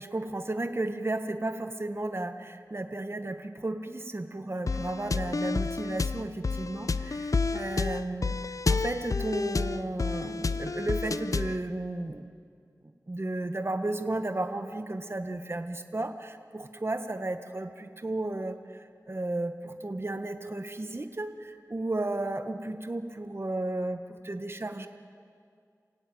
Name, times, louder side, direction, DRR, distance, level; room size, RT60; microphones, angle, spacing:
voice 1, 0.0-12.3 13.1-24.9, right 2 dB, 40° right, 7 dB, 1.5 m, -34 dB
sound 1, 4.7-11.6, left 4 dB, 60° left, 0.6 m, -30 dB
27.0 x 17.0 x 9.3 m, 2.3 s
wide cardioid pair, 55°, 6 cm